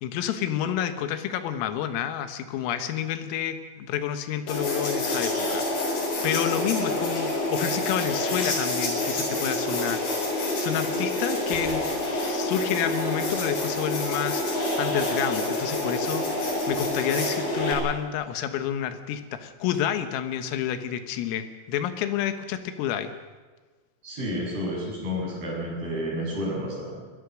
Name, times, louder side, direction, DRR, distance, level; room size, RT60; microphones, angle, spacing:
voice 1, 0.0-23.1, left 10 dB, 85° left, 9 dB, 4.0 m, -29 dB
sound 1, 4.5-17.7, left 1 dB, 45° left, 5.9 m, -27 dB
voice 2, 24.0-27.1, equal, 50° right, -4 dB, 9.8 m, -31 dB
21.5 x 21.5 x 6.3 m, 1.4 s
omnidirectional pair, 5.9 m